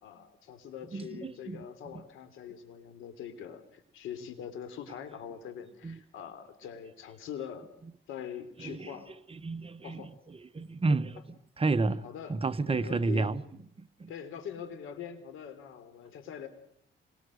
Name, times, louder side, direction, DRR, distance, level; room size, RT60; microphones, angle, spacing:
voice 1, 0.0-7.7 8.1-9.1 9.8-10.1 11.9-12.4 12.7-13.3 14.1-16.5, left 8 dB, 85° left, 3.5 m, -43 dB
voice 2, 0.9-1.7 1.9-2.0 5.8-6.0 8.6-8.9 9.3-11.2 11.6-12.0 12.3-13.4 13.8-14.1, right 3 dB, 30° right, 1.1 m, -31 dB
26.5 x 22.5 x 6.6 m
cardioid pair, 90°, 20 cm